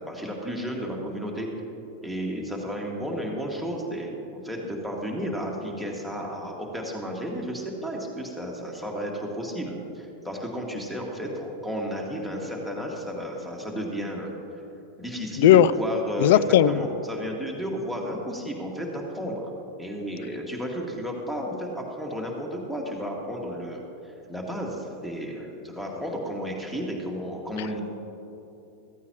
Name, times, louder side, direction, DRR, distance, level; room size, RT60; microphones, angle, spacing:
voice 1, 0.0-1.5 2.0-14.3 15.0-19.5 19.8-27.8, equal, ahead, 0 dB, 2.1 m, -33 dB
voice 2, 15.4-15.7 16.2-16.8, left 11 dB, 55° left, 17 dB, 0.3 m, -16 dB
15.0 x 14.5 x 3.1 m, 3.0 s
figure-of-eight pair, 90°, 0 cm